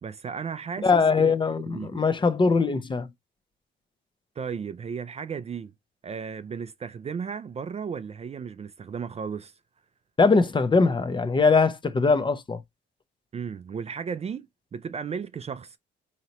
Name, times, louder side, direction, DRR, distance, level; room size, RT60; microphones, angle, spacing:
voice 1, 0.0-2.0 4.4-5.7 6.0-9.5 13.3-15.8, right 6 dB, 30° right, 0.4 m, -35 dB
voice 2, 0.8-3.1 10.2-12.6, left 4 dB, 25° left, 0.5 m, -21 dB
4.0 x 2.9 x 2.9 m
cardioid pair, 90°, 20 cm